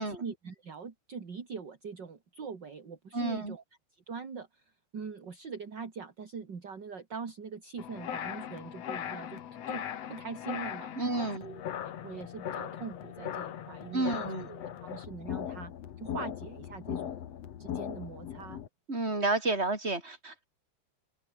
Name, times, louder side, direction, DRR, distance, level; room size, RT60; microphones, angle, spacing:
voice 1, 0.0-3.6 3.9-4.6 4.9-9.8 10.1-10.9 11.4-11.6 12.0-17.2 17.6-18.6, right 5 dB, 30° right, 2.4 m, -42 dB
voice 2, 3.1-3.6 11.0-11.5 13.9-14.5 18.9-20.4, right 2 dB, 15° right, 4.5 m, -31 dB
sound 1, 7.8-18.7, left 10 dB, 60° left, 1.8 m, -39 dB
open air
omnidirectional pair, 5.0 m